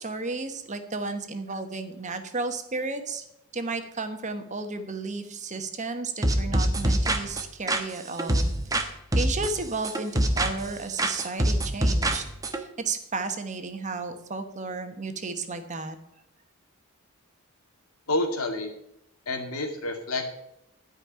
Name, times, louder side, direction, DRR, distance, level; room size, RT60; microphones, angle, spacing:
voice 1, 0.0-3.2 3.5-16.0, right 3 dB, 35° right, 7 dB, 1.2 m, -33 dB
sound 1, 6.2-8.9 9.1-10.7 11.0-12.6, right 1 dB, 15° right, 1.1 m, -25 dB
voice 2, 18.1-18.7 19.3-20.3, left 2 dB, 80° left, 4 dB, 2.3 m, -28 dB
12.0 x 5.4 x 8.9 m, 0.79 s
head